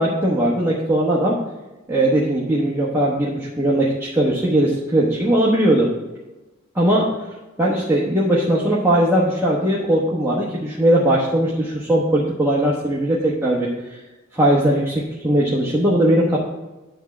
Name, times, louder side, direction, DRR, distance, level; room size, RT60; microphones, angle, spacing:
voice 1, 0.0-1.4 1.9-5.9 6.7-7.1 7.6-14.0 14.3-16.4, right 1 dB, 10° right, -6 dB, 1.1 m, -19 dB
10.0 x 3.6 x 7.0 m, 1.1 s
head